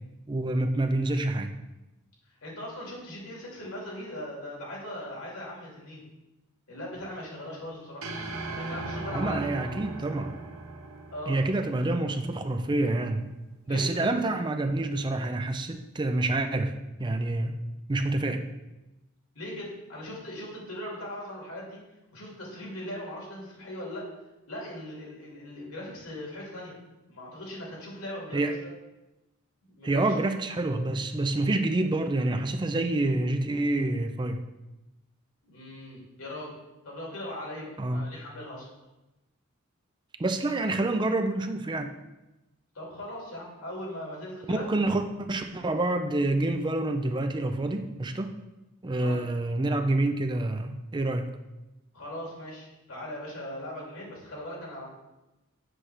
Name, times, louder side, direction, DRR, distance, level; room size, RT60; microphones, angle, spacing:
voice 1, 0.3-1.5 9.1-10.3 11.3-13.3 13.7-16.7 17.0-17.6 17.9-18.4 28.3-28.5 29.8-34.4 37.8-38.0 40.2-41.9 44.5-48.4 48.8-51.3, right 2 dB, 20° right, 7 dB, 0.4 m, -27 dB
voice 2, 2.4-6.1 6.7-8.1 8.5-9.7 11.1-11.4 13.6-14.2 19.3-21.8 22.1-24.1 24.5-26.7 27.1-28.7 29.8-30.2 35.5-36.6 36.8-38.7 42.7-44.7 49.0-49.2 51.9-54.9, left 1 dB, 90° left, -3 dB, 2.6 m, -39 dB
sound 1, 8.0-12.4, right 2 dB, 90° right, 1.0 m, -38 dB
7.7 x 3.3 x 6.1 m, 1.0 s
head